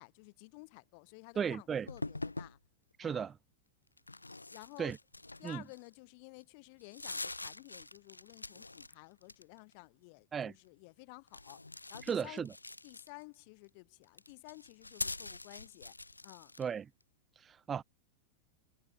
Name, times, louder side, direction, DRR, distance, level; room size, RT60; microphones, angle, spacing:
voice 1, 0.0-2.6 3.0-3.3 4.5-4.9 5.4-11.6 11.9-12.5 12.8-15.9 16.2-16.5, left 32 dB, 45° left, 4.1 m, -53 dB
voice 2, 1.4-1.9 3.0-3.3 4.8-5.0 5.4-5.6 10.3-10.5 12.1-12.5 16.6-16.9 17.4-17.8, right 7 dB, 20° right, 2.5 m, -35 dB
sound 1, 1.9-2.6 4.0-5.9 6.4-6.5 6.8-8.9 9.2-9.7 11.3-13.3 14.0-16.7, left 2 dB, 85° left, 5.2 m, -44 dB
figure-of-eight pair, 90°, 0 cm